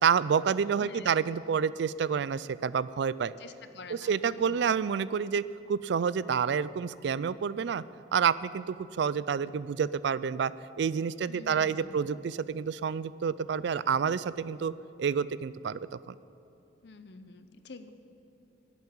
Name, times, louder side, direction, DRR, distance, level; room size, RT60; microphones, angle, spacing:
voice 1, 0.0-3.3 3.9-7.8 8.1-14.7 15.0-15.8 16.1-16.2, right 6 dB, 65° right, 17 dB, 0.3 m, -28 dB
voice 2, 0.8-1.2 3.4-4.7 11.3-12.2 16.8-17.9, left 3 dB, 60° left, 10 dB, 0.8 m, -48 dB
11.5 x 8.3 x 9.8 m, 2.8 s
head